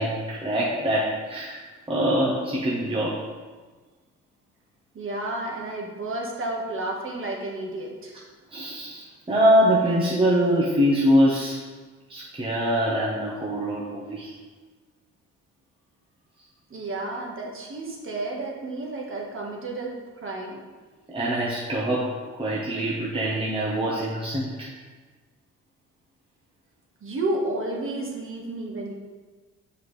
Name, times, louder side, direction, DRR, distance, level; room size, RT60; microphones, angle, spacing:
voice 1, 0.0-1.6 1.9-3.3 8.5-11.6 12.1-14.3 21.1-24.7, equal, 20° right, -5 dB, 1.1 m, -24 dB
voice 2, 4.9-8.1 16.7-19.9 20.2-20.6 27.0-28.9, right 2 dB, 45° right, -1 dB, 1.6 m, -31 dB
7.1 x 4.8 x 3.3 m, 1.3 s
cardioid pair, 90°, 30 cm